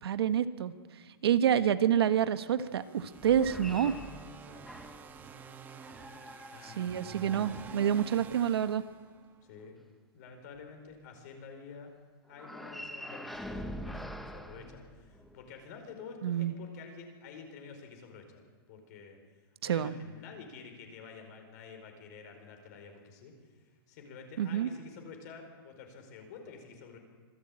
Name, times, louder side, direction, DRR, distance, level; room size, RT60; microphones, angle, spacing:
voice 1, 0.0-0.7 1.2-4.0 6.6-8.8 16.2-16.5 19.6-19.9 24.4-24.7, right 9 dB, 80° right, 11 dB, 1.3 m, -28 dB
sound 1, 2.6-9.5, right 5 dB, 15° right, 1.1 m, -49 dB
sound 2, 3.1-5.2 5.8-8.2 12.3-15.5, equal, ahead, 0.8 m, -45 dB
voice 2, 4.5-4.8 6.5-7.0 9.4-9.8 10.1-11.9 12.3-18.4 18.7-19.2 19.6-23.3 23.9-27.0, left 5 dB, 45° left, 5 dB, 4.9 m, -49 dB
25.5 x 15.5 x 8.8 m, 1.5 s
hypercardioid pair, 165°, 13 cm